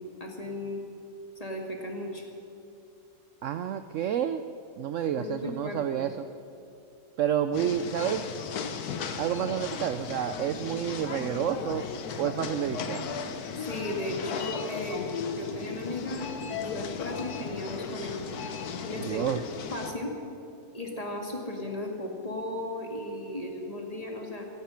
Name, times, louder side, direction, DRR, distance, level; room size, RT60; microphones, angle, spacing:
voice 1, 0.2-0.8 1.4-2.2 5.1-6.1 13.6-15.1 15.3-18.3 18.9-19.2 19.7-20.2 20.7-24.5, left 1 dB, 25° left, 1 dB, 2.0 m, -36 dB
voice 2, 3.4-4.5 4.8-6.3 7.2-8.3 9.2-11.9 12.2-13.1 19.0-19.4, right 10 dB, 70° right, 10 dB, 0.8 m, -29 dB
sound 1, 7.5-19.9, left 6 dB, 75° left, 1.4 m, -36 dB
16.5 x 15.0 x 5.8 m, 2.6 s
omnidirectional pair, 1.6 m